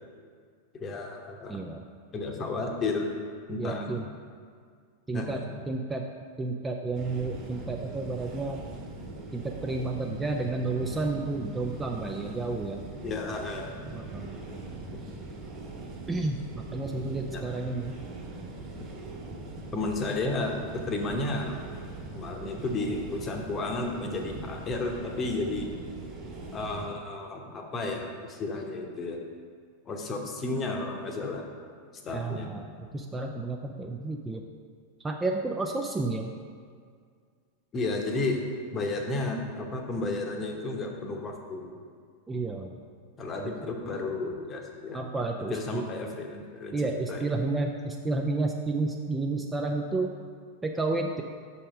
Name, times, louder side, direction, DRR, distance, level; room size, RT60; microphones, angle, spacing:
voice 1, 0.7-1.6 2.1-3.1 3.5-4.0 5.1-5.5 13.0-13.7 17.3-17.4 19.7-21.6 22.1-25.7 26.5-29.2 29.9-31.4 32.0-32.5 37.7-38.4 38.7-41.7 43.2-45.0 45.4-46.8 47.1-47.3, left 2 dB, 25° left, 2 dB, 0.9 m, -32 dB
voice 2, 1.5-1.8 3.6-4.1 5.1-5.4 5.7-6.0 6.4-8.6 9.3-12.8 13.9-14.4 16.1-17.9 32.1-34.4 35.0-36.3 42.3-42.8 43.4-43.6 44.9-45.8 46.7-50.1 50.6-51.2, right 3 dB, 10° right, 2 dB, 0.4 m, -31 dB
sound 1, 6.9-26.9, right 2 dB, 30° right, 1.4 m, -41 dB
6.2 x 4.2 x 5.2 m, 2.1 s
figure-of-eight pair, 90°, 0 cm